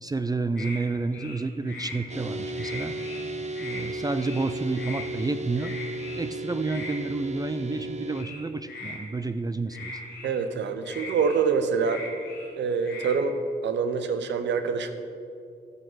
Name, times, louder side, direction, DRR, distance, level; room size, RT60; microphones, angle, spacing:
voice 1, 0.0-3.0 3.6-5.7 6.1-9.9, right 3 dB, 20° right, 10 dB, 0.4 m, -30 dB
sound 1, 0.6-0.8 1.1-2.0 2.4-3.2 3.5-3.9 4.1-4.4 4.8-5.1 5.6-6.2 6.6-7.0 8.1-9.0 9.7-10.3 10.8-12.5 12.8-13.1, left 3 dB, 70° left, 2.3 m, -40 dB
sound 2, 2.1-8.2, right 2 dB, 40° right, 1.1 m, -35 dB
voice 2, 10.2-12.0 12.6-13.4 13.6-14.9, right 5 dB, 85° right, 9 dB, 0.7 m, -25 dB
13.5 x 6.5 x 4.7 m, 2.5 s
cardioid pair, 60°, 18 cm